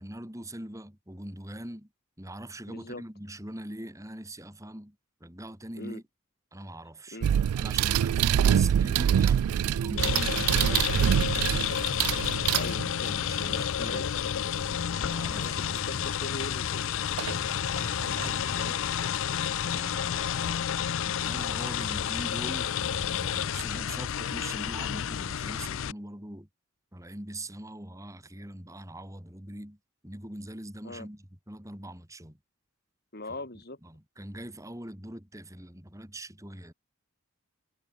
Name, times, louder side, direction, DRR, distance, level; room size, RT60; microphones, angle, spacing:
voice 1, 0.0-1.9 2.2-6.0 6.5-7.2 7.6-11.0 13.0-14.3 15.0-16.1 19.6-20.7 21.0-26.5 26.9-29.8 30.0-32.4 33.8-36.7, right 1 dB, 15° right, 2.9 m, -42 dB
voice 2, 2.7-3.0 5.8-6.0 7.1-7.3 12.3-14.0 15.3-17.7 18.2-19.2 30.8-31.1 33.1-33.8, left 2 dB, 45° left, 2.7 m, -41 dB
sound 1, 7.2-13.2 15.7-15.8 17.2-17.4 17.8-18.7, right 9 dB, 85° right, 0.3 m, -25 dB
sound 2, 10.0-25.9, left 9 dB, 60° left, 0.4 m, -30 dB
head